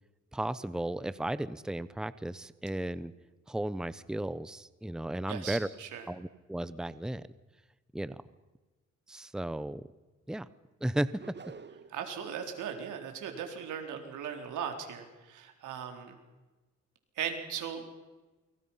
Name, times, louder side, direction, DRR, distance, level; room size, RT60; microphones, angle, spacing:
voice 1, 0.3-3.1 3.5-5.7 6.1-7.2 7.9-8.2 9.1-9.8 10.3-10.5 10.8-11.1, right 1 dB, ahead, 15 dB, 0.9 m, -34 dB
voice 2, 5.3-6.0 11.9-16.2 17.2-17.8, right 8 dB, 80° right, 4 dB, 4.2 m, -38 dB
sound 1, 11.2-12.1, right 5 dB, 35° right, 1.8 m, -47 dB
29.0 x 24.0 x 5.7 m, 1.2 s
cardioid pair, 90°, 30 cm